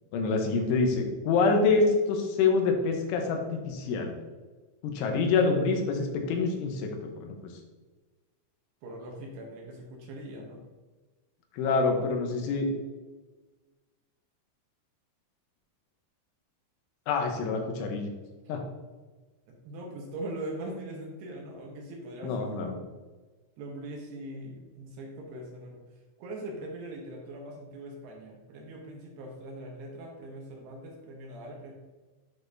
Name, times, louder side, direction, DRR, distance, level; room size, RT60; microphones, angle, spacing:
voice 1, 0.1-4.1 4.8-7.4 11.5-12.7 17.1-18.1 18.5-18.6 22.2-22.8, left 4 dB, 85° left, 3 dB, 3.3 m, -26 dB
voice 2, 8.8-10.6 19.5-22.8 23.6-25.8 26.2-31.7, right 1 dB, 75° right, 0 dB, 2.8 m, -41 dB
11.0 x 4.0 x 2.6 m, 1.3 s
omnidirectional pair, 5.4 m